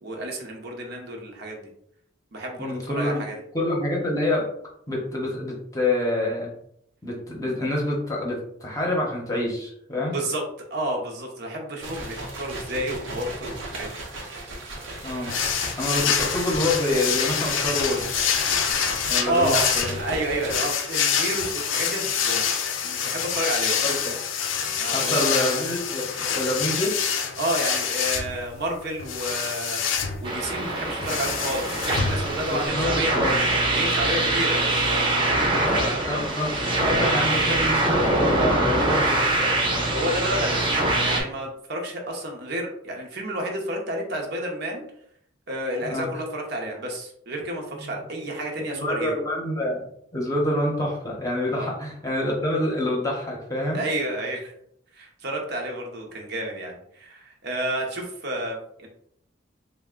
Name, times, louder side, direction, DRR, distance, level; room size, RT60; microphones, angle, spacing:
voice 1, 0.0-1.7 2.3-3.4 10.1-10.4 10.7-13.9 16.0-16.1 19.3-19.7 20.0-23.8 24.8-25.5 26.1-26.3 27.4-29.8 30.2-33.1 33.7-36.3 39.7-44.8 45.5-49.2 51.5-51.7 53.7-54.5 54.9-58.9, right 1 dB, 60° right, 1 dB, 0.8 m, -30 dB
voice 2, 2.6-3.2 3.5-4.5 4.9-6.5 7.0-10.1 15.0-15.3 15.8-18.2 19.1-19.9 23.8-24.1 24.9-26.9 32.7-33.4 35.4-39.5 45.9-46.1 47.8-47.9 48.3-48.4 48.7-49.9 50.1-53.8, left 1 dB, 20° left, -2 dB, 0.8 m, -27 dB
sound 1, 11.8-21.2, right 2 dB, 85° right, 0.8 m, -36 dB
sound 2, 15.3-32.7, left 7 dB, 85° left, 0.5 m, -26 dB
sound 3, 30.2-41.2, right 2 dB, 25° right, 0.8 m, -23 dB
3.4 x 2.2 x 3.6 m, 0.69 s
head